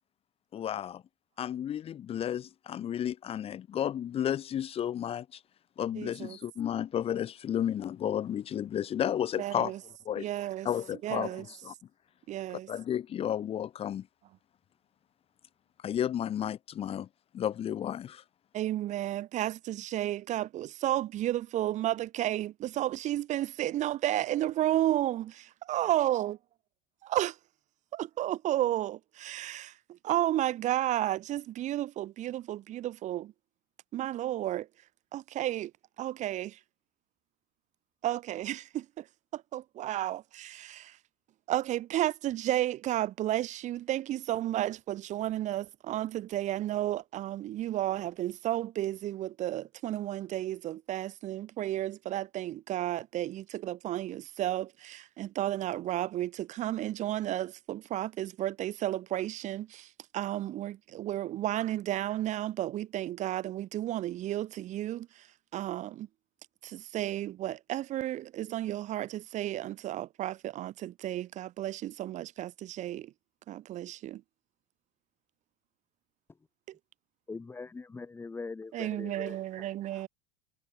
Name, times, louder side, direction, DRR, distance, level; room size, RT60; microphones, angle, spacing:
voice 1, 0.5-1.0 1.4-5.4 5.8-9.7 10.0-10.3 10.6-11.7 12.7-14.1 15.8-17.1 17.3-18.2, left 10 dB, 30° left, 5.0 m, -32 dB
voice 2, 5.9-6.4 9.4-9.8 10.2-10.7 11.0-11.5 12.3-12.7 18.5-26.4 27.0-27.4 27.9-33.3 33.9-34.7 35.1-35.7 36.0-36.6 38.0-39.1 39.3-41.0 41.5-65.3 65.5-66.1 66.6-73.1 73.5-74.2 76.7-76.8 78.7-80.1, right 13 dB, 40° right, 4.6 m, -32 dB
voice 3, 77.3-79.7 79.9-80.0, left 4 dB, 10° left, 3.0 m, -42 dB
supercardioid pair, 145°, 18 cm